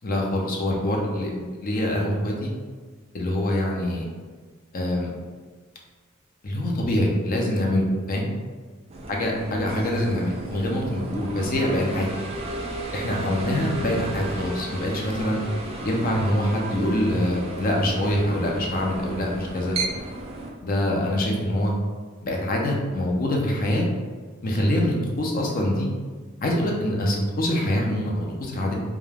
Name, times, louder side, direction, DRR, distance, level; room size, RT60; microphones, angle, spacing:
voice 1, 0.0-2.5 3.1-4.1 4.7-5.1 6.4-8.3 9.1-12.1 12.9-15.4 15.8-19.8 20.6-21.7 22.2-23.9 24.4-25.9 26.4-28.7, left 1 dB, 40° left, -1 dB, 0.5 m, -24 dB
sound 1, 8.9-20.5, right 2 dB, 30° right, 0.3 m, -34 dB
2.3 x 2.2 x 3.2 m, 1.5 s
head